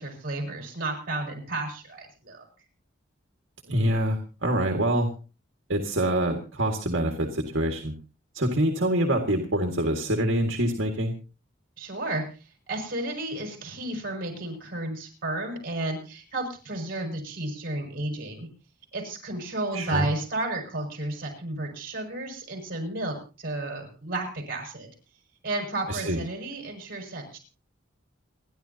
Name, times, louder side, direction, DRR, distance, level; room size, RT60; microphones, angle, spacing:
voice 1, 0.0-2.4 11.8-12.2 12.7-18.5 18.9-24.9 25.4-27.4, right 2 dB, 50° right, 1 dB, 6.1 m, -32 dB
voice 2, 3.7-5.1 5.7-7.9 8.3-11.1 19.7-20.1 25.9-26.2, right 1 dB, 70° right, 2 dB, 1.9 m, -25 dB
29.0 x 11.0 x 2.9 m, 0.34 s
head